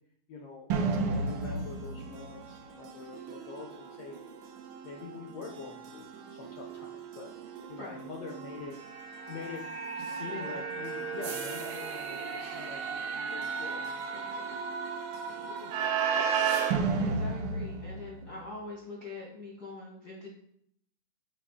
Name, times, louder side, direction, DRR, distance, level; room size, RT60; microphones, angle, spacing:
voice 1, 0.3-4.2 4.8-7.3 7.7-8.8 9.2-9.7 9.9-14.6 15.1-15.9, left 5 dB, 80° left, 1 dB, 1.4 m, -45 dB
sound 1, 0.7-18.4, right 5 dB, 75° right, 2.1 m, -35 dB
sound 2, 8.3-16.6 16.9-17.0, right 5 dB, 55° right, 1.1 m, -40 dB
voice 2, 10.2-10.8 17.0-20.3, left 2 dB, 60° left, -3 dB, 1.0 m, -44 dB
8.4 x 3.3 x 3.6 m, 0.71 s
omnidirectional pair, 3.6 m